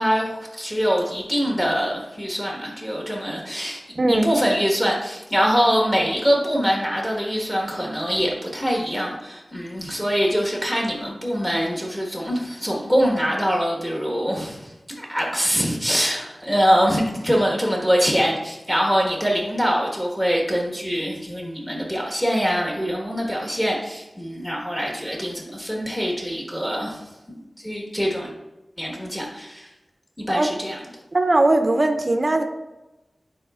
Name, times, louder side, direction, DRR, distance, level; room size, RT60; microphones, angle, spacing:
voice 1, 0.0-3.8 4.1-27.0 27.3-28.3 28.8-29.7 30.2-30.8, equal, 10° left, -2 dB, 1.4 m, -23 dB
voice 2, 4.0-4.3 30.3-30.5 31.1-32.4, right 2 dB, 45° right, 6 dB, 0.6 m, -19 dB
9.9 x 4.2 x 2.4 m, 1.0 s
wide cardioid pair, 80°, 0 cm